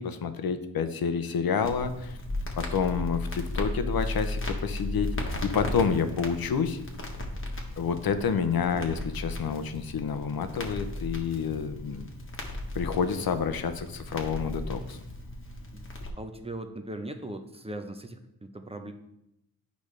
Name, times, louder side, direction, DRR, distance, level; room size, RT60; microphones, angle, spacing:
voice 1, 0.0-2.2 2.6-6.8 7.8-12.1 12.7-15.0, left 6 dB, 50° left, 10 dB, 0.7 m, -29 dB
Crackle, 1.6-16.1, left 1 dB, 25° left, 1.2 m, -36 dB
voice 2, 16.2-18.9, right 1 dB, 15° right, 6 dB, 0.6 m, -39 dB
8.3 x 5.2 x 3.3 m, 0.84 s
cardioid pair, 90°, 46 cm